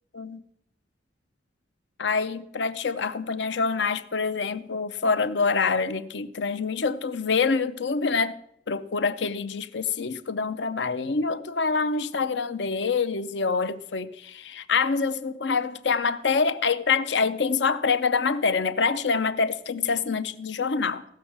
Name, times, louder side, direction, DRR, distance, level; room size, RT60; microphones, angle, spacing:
voice 1, 2.0-8.4 8.7-21.1, left 5 dB, 70° left, 0.6 m, -26 dB
15.5 x 6.3 x 7.3 m
head